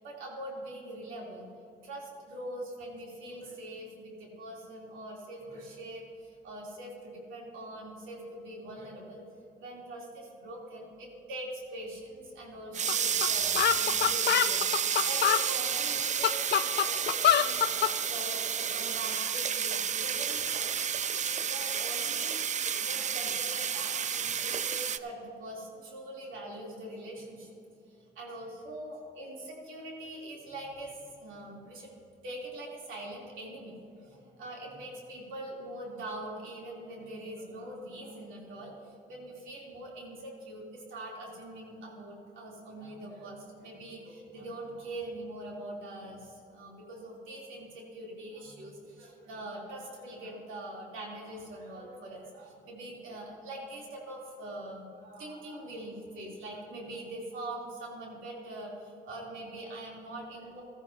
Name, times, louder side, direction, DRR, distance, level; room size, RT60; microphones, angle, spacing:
voice 1, 0.0-1.5 1.8-9.2 9.6-17.6 18.0-20.7 21.1-27.5 27.9-32.0 32.2-60.6, right 1 dB, 85° right, -3 dB, 3.2 m, -43 dB
sound 1, 12.7-25.0, right 7 dB, 40° right, 0.4 m, -31 dB
sound 2, 12.9-13.0 13.2-13.3 13.6-15.4 16.0-17.9, left 11 dB, 55° left, 0.4 m, -25 dB
16.5 x 13.5 x 2.8 m, 2.6 s
cardioid pair, 90°, 20 cm